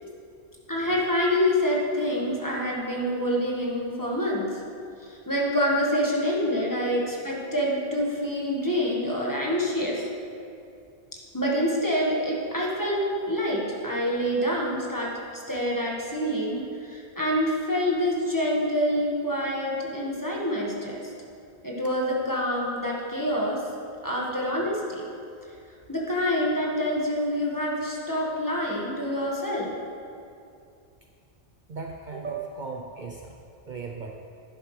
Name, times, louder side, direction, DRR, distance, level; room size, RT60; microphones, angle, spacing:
voice 1, 0.7-4.6 5.0-10.1 11.3-21.1 21.6-23.6 24.0-25.0 25.9-29.7, equal, 15° left, -4 dB, 1.5 m, -26 dB
voice 2, 31.7-33.4 33.7-34.1, right 4 dB, 50° right, 1 dB, 0.7 m, -36 dB
11.0 x 10.0 x 3.2 m, 2.5 s
omnidirectional pair, 1.2 m